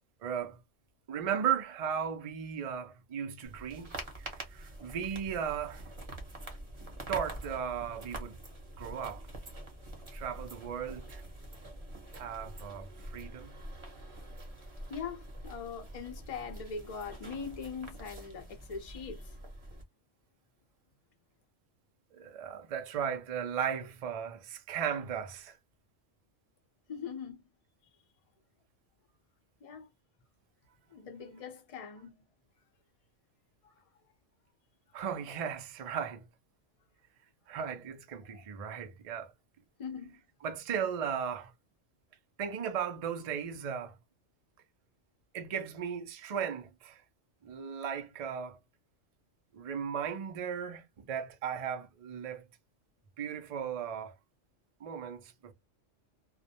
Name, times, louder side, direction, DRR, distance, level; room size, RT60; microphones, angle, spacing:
voice 1, 0.2-0.6 1.1-5.8 7.1-8.4 8.8-9.2 10.1-11.2 12.1-13.6 22.1-25.6 34.9-36.2 37.5-39.3 40.4-41.5 42.4-44.0 45.3-47.0 47.4-48.6 49.5-52.4 53.2-54.1 54.8-55.5, right 8 dB, 75° right, 0.3 m, -36 dB
sound 1, 3.4-19.8, right 1 dB, 30° right, 0.7 m, -45 dB
voice 2, 14.9-19.4 26.9-27.4 29.6-29.9 30.9-32.1 33.6-34.1 38.3-38.5 39.8-40.2, left 6 dB, 40° left, 0.5 m, -42 dB
2.3 x 2.1 x 2.7 m
omnidirectional pair, 1.3 m